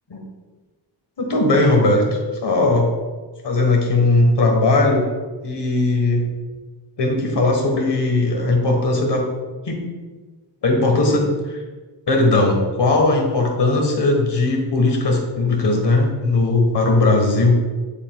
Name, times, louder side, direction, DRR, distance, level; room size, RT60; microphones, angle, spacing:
voice 1, 1.2-2.9 3.4-5.1 5.4-6.3 7.0-9.3 9.6-9.8 10.6-11.6 12.1-17.6, left 2 dB, 65° left, 1 dB, 1.5 m, -18 dB
7.5 x 6.9 x 2.4 m, 1.3 s
wide cardioid pair, 135°, 45 cm